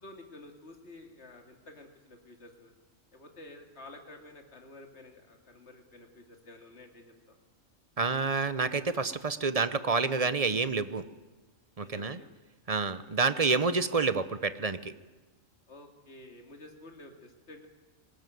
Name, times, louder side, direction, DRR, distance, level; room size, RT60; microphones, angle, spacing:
voice 1, 0.0-2.7 3.1-7.4 11.8-12.3 15.7-17.7, left 2 dB, 55° left, 4 dB, 2.8 m, -51 dB
voice 2, 8.0-11.0 11.8-12.2 12.7-14.9, right 4 dB, 35° right, 13 dB, 0.7 m, -28 dB
19.5 x 18.5 x 9.3 m, 1.2 s
omnidirectional pair, 1.4 m